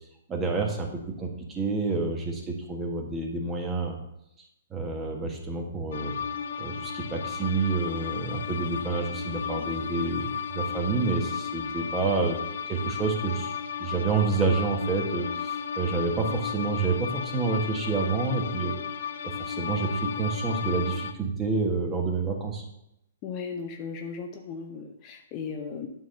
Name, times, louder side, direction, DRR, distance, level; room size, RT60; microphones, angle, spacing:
voice 1, 0.3-4.0 4.7-6.1 6.6-12.4 12.7-13.5 13.8-18.8 19.2-22.6, right 4 dB, 15° right, 1 dB, 1.5 m, -28 dB
sound 1, 5.9-21.1, left 7 dB, 65° left, 0.6 m, -34 dB
voice 2, 23.2-25.9, left 5 dB, 30° left, 4 dB, 0.8 m, -36 dB
9.6 x 3.8 x 6.5 m, 0.82 s
hypercardioid pair, 145°, 0 cm